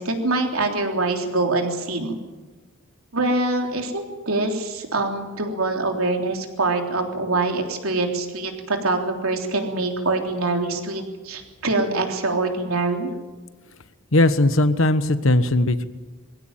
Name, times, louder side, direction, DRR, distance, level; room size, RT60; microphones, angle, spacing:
voice 1, 0.0-2.2 3.1-13.1, right 2 dB, 75° right, 3 dB, 3.5 m, -24 dB
voice 2, 14.1-15.9, left 2 dB, 65° left, 12 dB, 1.2 m, -18 dB
22.5 x 16.5 x 9.1 m, 1.3 s
head